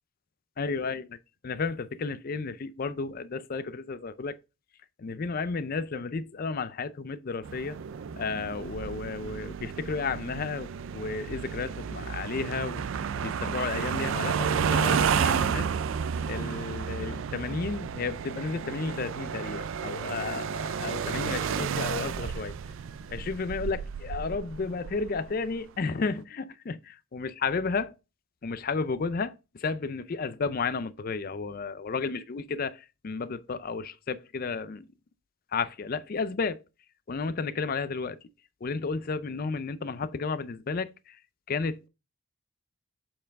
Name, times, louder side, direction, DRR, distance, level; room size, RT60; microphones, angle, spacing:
voice 1, 0.6-1.1 1.4-4.4 5.0-7.8 8.2-12.8 13.2-15.7 16.3-22.5 23.1-28.0 28.4-34.9 35.5-36.6 37.1-38.2 38.6-41.2 41.5-41.9, left 4 dB, 40° left, 0.4 m, -32 dB
sound 1, 7.4-25.6, right 7 dB, 60° right, 0.3 m, -31 dB
7.6 x 4.5 x 3.5 m
head